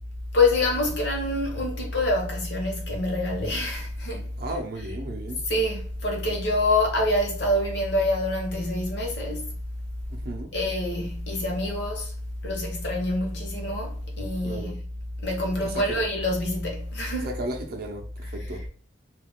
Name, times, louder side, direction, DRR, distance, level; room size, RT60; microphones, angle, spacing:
voice 1, 0.3-4.3 5.5-9.5 10.5-12.1 12.4-14.8 15.2-17.3, left 1 dB, 60° left, 0.9 m, -26 dB
voice 2, 4.4-5.4 10.1-10.5 14.4-14.8 15.6-16.0 17.2-18.7, right 1 dB, 50° right, 0.5 m, -35 dB
2.3 x 2.2 x 3.4 m
head